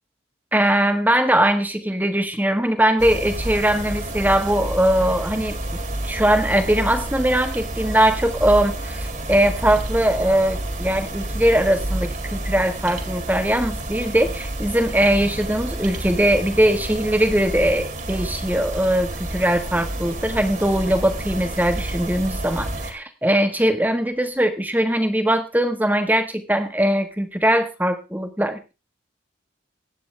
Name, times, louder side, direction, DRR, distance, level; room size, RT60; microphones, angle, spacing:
voice 1, 0.5-5.5 6.0-28.7, right 1 dB, 10° right, 7 dB, 1.4 m, -20 dB
sound 1, 3.0-22.9, right 1 dB, 40° right, 2.2 m, -29 dB
21.0 x 9.2 x 3.3 m, 0.29 s
head